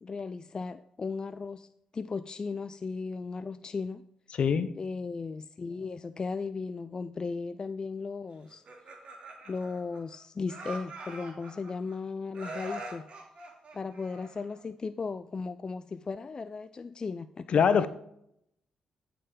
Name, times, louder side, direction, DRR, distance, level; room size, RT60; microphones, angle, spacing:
voice 1, 0.0-4.0 4.8-8.6 9.5-13.0 13.7-17.5 17.8-17.9, left 4 dB, 35° left, 0.4 m, -36 dB
voice 2, 4.4-4.8 17.5-17.9, left 6 dB, 60° left, 0.8 m, -23 dB
Laughter, 8.5-10.2 10.5-11.9 12.3-14.6, right 2 dB, 60° right, 3.0 m, -43 dB
15.5 x 6.8 x 3.9 m
cardioid pair, 65°, 2 cm